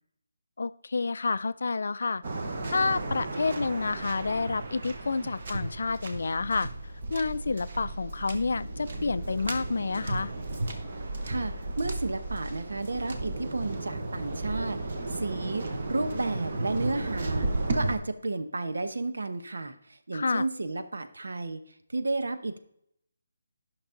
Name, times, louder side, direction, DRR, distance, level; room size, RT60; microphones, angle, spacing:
voice 1, 0.6-2.2 2.7-6.7 7.1-10.3 20.1-20.4, left 4 dB, 55° left, 15 dB, 0.4 m, -29 dB
Waves surf, 2.2-18.0, right 2 dB, 35° right, 1.0 m, -34 dB
voice 2, 11.2-14.8 15.1-17.5 17.7-21.6 21.9-22.6, right 2 dB, 90° right, 9 dB, 1.0 m, -32 dB
11.5 x 6.0 x 3.9 m, 0.71 s
hypercardioid pair, 180°, 0 cm